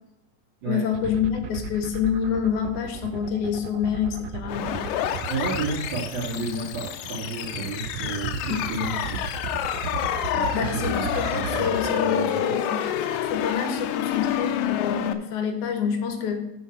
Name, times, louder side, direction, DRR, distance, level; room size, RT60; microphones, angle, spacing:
voice 1, 0.7-4.9 10.5-12.8 13.3-16.4, left 7 dB, 70° left, 5 dB, 2.4 m, -27 dB
sound 1, 0.9-12.0, right 6 dB, 85° right, 1.4 m, -35 dB
sound 2, 4.5-15.1, left 10 dB, 85° left, 2.2 m, -28 dB
voice 2, 5.3-9.2 10.3-12.4, right 3 dB, 65° right, -7 dB, 3.4 m, -31 dB
6.5 x 5.7 x 7.2 m, 0.87 s
omnidirectional pair, 3.8 m